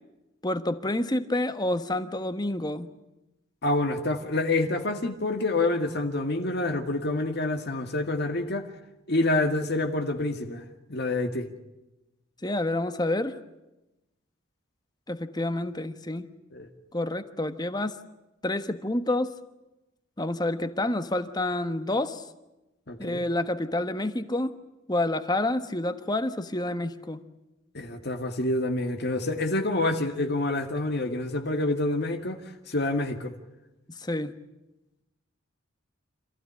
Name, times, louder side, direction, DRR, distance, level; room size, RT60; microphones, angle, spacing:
voice 1, 0.4-2.9 12.4-13.4 15.1-16.3 16.9-17.9 18.4-19.3 20.2-22.2 23.0-24.6 24.9-27.2 34.0-34.3, left 1 dB, 20° left, 10 dB, 1.3 m, -28 dB
voice 2, 3.6-8.7 9.1-11.5 16.5-16.7 22.9-23.3 27.7-32.4 32.7-33.3, left 2 dB, 55° left, 5 dB, 2.0 m, -27 dB
27.0 x 15.5 x 9.9 m, 0.97 s
head